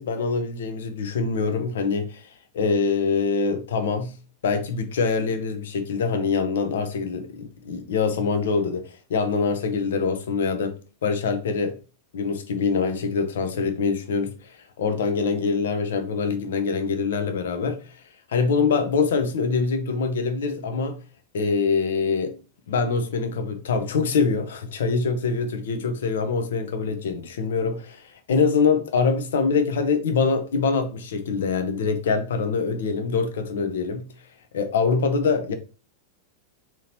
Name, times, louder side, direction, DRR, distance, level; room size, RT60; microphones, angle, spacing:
voice 1, 0.0-2.3 2.5-4.1 4.4-8.8 9.1-10.8 11.0-11.8 12.1-17.9 18.3-21.0 21.3-22.4 22.7-34.1 34.5-35.5, left 5 dB, 60° left, 0.7 m, -24 dB
3.8 x 3.0 x 2.9 m
figure-of-eight pair, 90°, 0 cm